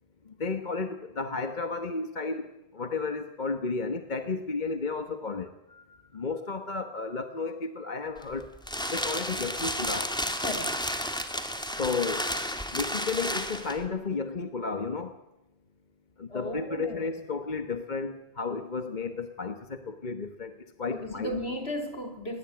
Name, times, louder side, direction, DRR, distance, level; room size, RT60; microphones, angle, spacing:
voice 1, 0.2-5.5 6.1-8.5 8.9-10.2 11.8-15.2 16.2-21.4, left 4 dB, 40° left, 8 dB, 1.4 m, -33 dB
sound 1, 8.2-13.9, equal, 5° left, 2.3 m, -32 dB
voice 2, 10.4-10.8 16.3-17.2 20.9-22.4, left 1 dB, 65° left, 5 dB, 4.2 m, -36 dB
29.0 x 21.0 x 8.9 m, 0.95 s
omnidirectional pair, 1.2 m